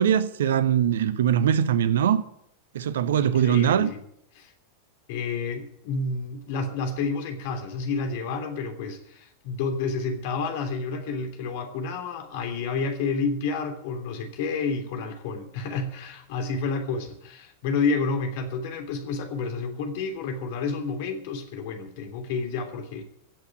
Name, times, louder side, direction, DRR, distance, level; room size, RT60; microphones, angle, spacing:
voice 1, 0.0-2.2 2.7-3.9, right 9 dB, 60° right, 1.0 m, -22 dB
voice 2, 3.2-4.0 4.4-4.5 5.1-23.0, left 4 dB, 50° left, 3.2 m, -30 dB
16.5 x 8.5 x 9.0 m
figure-of-eight pair, 90°, 0 cm